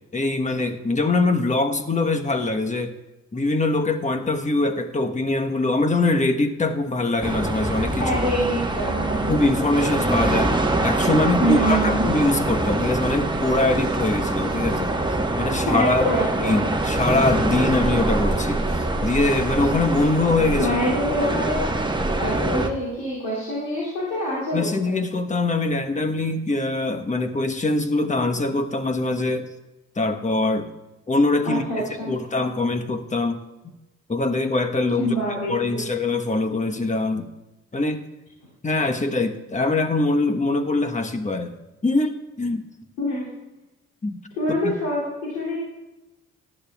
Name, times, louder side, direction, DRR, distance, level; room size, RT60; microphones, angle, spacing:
voice 1, 0.1-3.0 3.3-8.2 9.3-10.6 10.8-14.9 15.4-16.1 16.4-20.8 24.5-29.5 30.0-30.7 31.1-33.4 34.1-35.1 35.5-37.3 37.7-38.0 38.6-41.5 41.8-42.7 44.0-44.2 44.6-44.7, left 2 dB, 20° left, 6 dB, 1.2 m, -23 dB
sound 1, 7.2-22.7, right 2 dB, 15° right, 1.3 m, -24 dB
voice 2, 8.0-9.3 11.4-12.0 15.7-16.7 20.6-21.7 22.2-25.0 31.4-32.1 35.0-35.8 43.0-43.2 44.4-45.6, equal, 85° left, -8 dB, 2.9 m, -25 dB
18.0 x 12.0 x 2.4 m, 1.0 s
hypercardioid pair, 45°, 33 cm